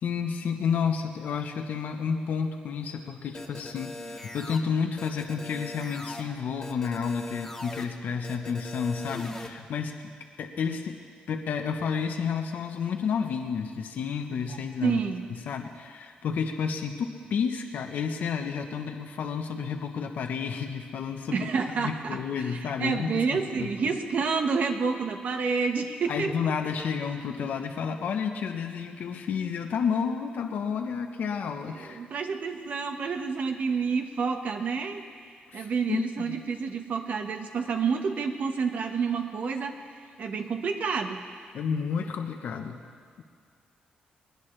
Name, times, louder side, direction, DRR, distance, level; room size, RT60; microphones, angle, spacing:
voice 1, 0.0-10.1 10.4-11.0 11.3-15.0 15.3-21.5 21.8-23.7 26.1-32.0 35.5-36.4 41.5-42.8 43.2-43.3, left 6 dB, 70° left, 4 dB, 1.0 m, -31 dB
sound 1, 3.3-4.6 5.0-6.2 6.6-7.8 8.2-9.5, left 2 dB, 15° left, 1.7 m, -40 dB
voice 2, 14.5-15.2 21.3-26.5 27.4-27.5 31.7-35.0 35.5-41.2, right 5 dB, 60° right, 4 dB, 1.4 m, -29 dB
22.0 x 20.0 x 3.3 m, 2.1 s
cardioid pair, 130°, 3 cm